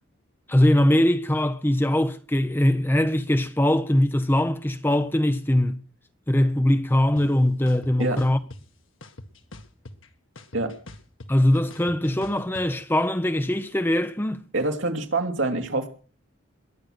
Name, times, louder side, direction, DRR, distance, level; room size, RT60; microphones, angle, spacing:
voice 1, 0.5-5.8 6.3-8.4 11.3-14.4, left 1 dB, 10° left, 0.7 m, -21 dB
sound 1, 7.2-7.3 7.7-8.6 9.0-10.1 10.4-12.6, left 2 dB, 75° left, 1.8 m, -43 dB
voice 2, 14.5-15.9, right 2 dB, 70° right, 2.9 m, -25 dB
21.5 x 9.4 x 6.6 m
head